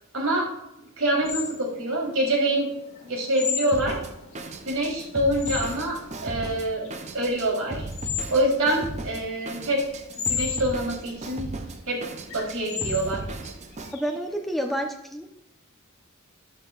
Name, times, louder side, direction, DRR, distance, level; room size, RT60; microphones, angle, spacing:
voice 1, 0.1-0.5 1.0-2.7 3.0-4.0 4.7-6.9 7.1-7.9 8.3-9.8 10.2-11.5 11.9-12.0 12.3-13.2, right 1 dB, 80° right, -3 dB, 3.8 m, -25 dB
sound 1, 1.3-14.7, left 8 dB, 65° left, 3.0 m, -35 dB
Drum kit, 3.7-13.9, right 2 dB, 30° right, 0.6 m, -37 dB
voice 2, 13.9-15.3, equal, ahead, 2 dB, 0.9 m, -29 dB
12.5 x 11.0 x 2.5 m, 0.86 s
head